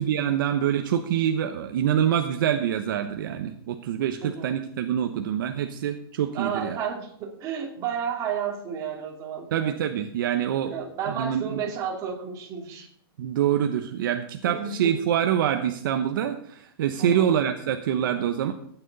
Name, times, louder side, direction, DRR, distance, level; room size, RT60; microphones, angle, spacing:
voice 1, 0.0-6.8 9.5-10.7 11.1-11.6 13.2-18.5, right 9 dB, 55° right, 6 dB, 1.0 m, -25 dB
voice 2, 4.2-4.5 6.3-9.5 10.6-12.9 14.5-15.0 17.0-17.3, right 7 dB, 25° right, 0 dB, 2.7 m, -32 dB
15.0 x 9.3 x 4.1 m, 0.65 s
hypercardioid pair, 160°, 13 cm